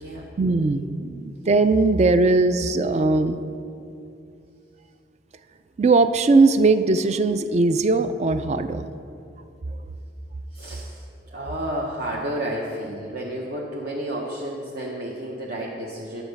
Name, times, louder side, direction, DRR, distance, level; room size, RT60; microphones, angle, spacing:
voice 1, 0.4-3.4 5.8-8.9, right 3 dB, 35° right, 11 dB, 0.4 m, -19 dB
voice 2, 10.5-11.0 11.3-16.2, right 1 dB, 55° right, -3 dB, 0.9 m, -31 dB
10.0 x 7.0 x 5.3 m, 2.6 s
head